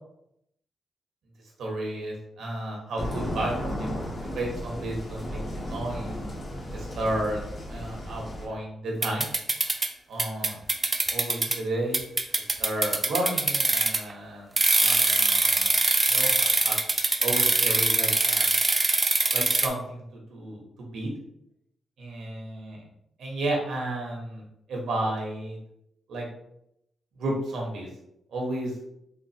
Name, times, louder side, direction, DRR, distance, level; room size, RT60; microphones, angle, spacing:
voice 1, 1.6-3.9 4.3-6.2 6.7-7.4 7.7-9.3 10.1-10.6 11.1-12.0 12.6-14.5 14.8-15.7 16.1-16.8 17.2-18.5 19.3-20.6 20.9-21.1 22.0-22.8 23.2-24.4 24.7-25.6 26.1-26.3 27.2-27.9 28.3-28.7, right 1 dB, 80° right, -2 dB, 1.1 m, -32 dB
sound 1, 3.0-8.5, equal, 35° left, 0.9 m, -34 dB
sound 2, 9.0-9.9 10.2-11.6 11.9-14.1 14.6-19.7, right 3 dB, 25° right, 0.4 m, -23 dB
3.8 x 2.6 x 2.8 m, 0.79 s
cardioid pair, 90°, 0 cm